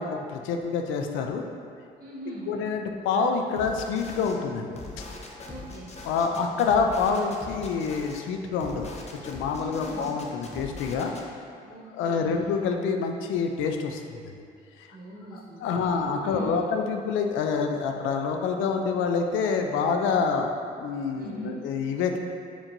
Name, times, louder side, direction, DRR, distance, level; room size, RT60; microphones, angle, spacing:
voice 1, 0.0-1.4 2.5-4.8 6.1-8.9 9.2-11.1 11.9-14.3 15.3-20.5 20.8-22.2, left 5 dB, 80° left, 4 dB, 0.4 m, -27 dB
voice 2, 2.0-2.5 5.4-5.9 9.6-10.1 11.6-12.4 14.9-16.7 21.1-21.6, right 1 dB, 50° right, -5 dB, 1.3 m, -40 dB
sound 1, 3.6-4.4 4.7-8.2 8.6-11.2, left 2 dB, 35° left, 0.7 m, -42 dB
4.4 x 4.2 x 2.6 m, 2.3 s
supercardioid pair, 55°, 20 cm